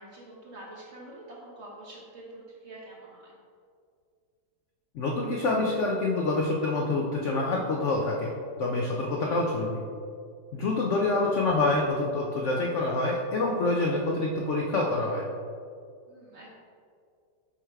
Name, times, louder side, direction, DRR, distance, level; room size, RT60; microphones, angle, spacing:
voice 1, 0.0-3.4 11.0-11.1 16.1-16.5, right 1 dB, 50° right, -3 dB, 0.9 m, -46 dB
voice 2, 4.9-8.3 8.6-9.8 10.5-15.2, left 2 dB, 75° left, -1 dB, 0.6 m, -26 dB
8.7 x 3.3 x 3.5 m, 2.3 s
omnidirectional pair, 1.9 m